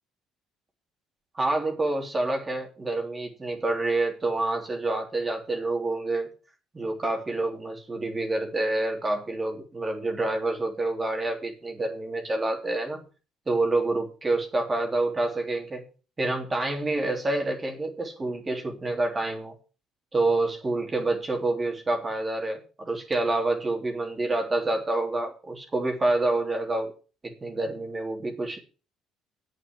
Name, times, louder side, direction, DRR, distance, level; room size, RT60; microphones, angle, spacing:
voice 1, 1.3-6.3 6.7-13.0 13.5-15.8 16.2-19.5 20.1-26.9 27.2-28.6, right 2 dB, 25° right, 3 dB, 3.3 m, -27 dB
8.2 x 8.0 x 7.6 m, 0.35 s
supercardioid pair, 80°, 0 cm